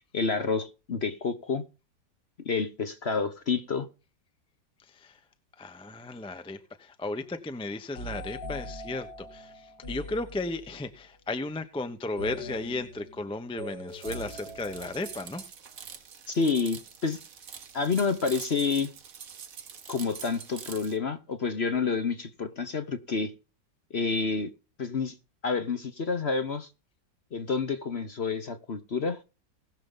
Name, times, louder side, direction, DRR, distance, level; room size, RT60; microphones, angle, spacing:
voice 1, 0.1-1.6 2.4-3.9 16.3-17.2 17.7-18.9 19.9-23.3 23.9-24.5 24.8-25.1 25.4-26.7 27.3-29.2, left 5 dB, 45° left, 1.0 m, -29 dB
voice 2, 4.8-5.2 5.6-15.5, left 2 dB, 5° left, 0.6 m, -35 dB
sound 1, 8.0-10.9 12.2-15.5, equal, 80° left, 4.4 m, -42 dB
sound 2, 13.9-21.0, right 7 dB, 55° right, 1.4 m, -45 dB
20.0 x 6.8 x 3.9 m
omnidirectional pair, 2.0 m